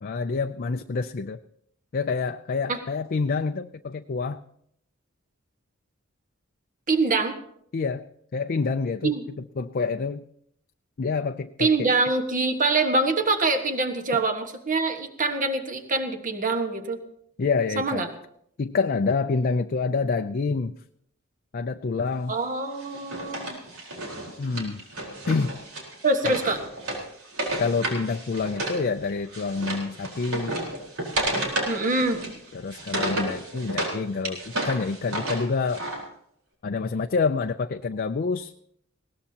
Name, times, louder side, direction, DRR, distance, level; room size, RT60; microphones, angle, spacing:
voice 1, 0.0-1.4 1.9-4.4 7.7-8.0 8.3-10.3 11.0-11.9 14.1-14.2 17.4-18.1 18.6-20.8 21.5-22.4 24.4-24.8 25.3-25.6 26.2-26.4 27.6-30.6 32.5-35.8 36.6-38.5, left 4 dB, 45° left, 7 dB, 0.4 m, -27 dB
voice 2, 6.9-7.3 9.0-9.2 11.6-17.0 17.8-18.1 22.3-23.6 26.0-26.6 31.7-32.2, right 3 dB, 40° right, 5 dB, 1.4 m, -24 dB
Wood, 22.8-28.8 29.1-33.9 34.2-36.0, right 1 dB, 90° right, 4.3 m, -32 dB
20.0 x 18.0 x 2.9 m, 0.69 s
head